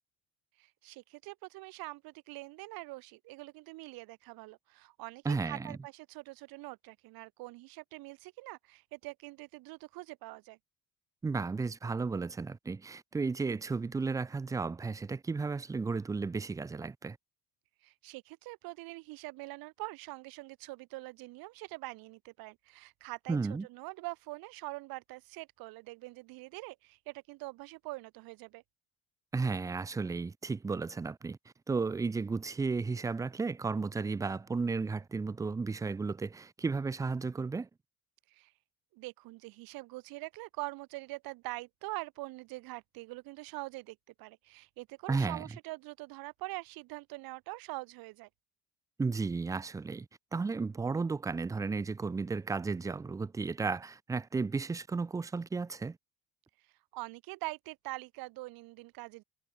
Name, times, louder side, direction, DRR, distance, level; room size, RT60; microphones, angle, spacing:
voice 1, 0.6-10.6 17.8-23.4 23.7-28.6 38.3-38.5 38.9-48.3 56.9-59.2, right 22 dB, 85° right, 1.8 m, -44 dB
voice 2, 5.2-5.8 11.2-17.2 23.3-23.7 29.3-31.4 31.7-37.7 45.1-45.5 49.0-56.0, right 4 dB, 10° right, 0.3 m, -34 dB
cardioid pair, 105°, 35 cm